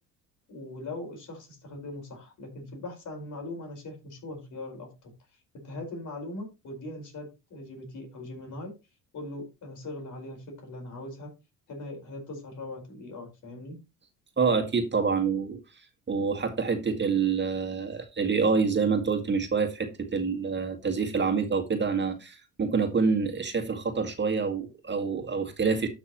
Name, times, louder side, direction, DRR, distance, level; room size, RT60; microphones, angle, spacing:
voice 1, 0.5-5.1 5.6-8.7 9.1-11.3 11.7-13.8, left 2 dB, 60° left, 5.0 m, -40 dB
voice 2, 14.4-15.6 16.1-25.9, right 5 dB, 30° right, 1.9 m, -27 dB
12.5 x 6.1 x 3.0 m
supercardioid pair, 85°, 35 cm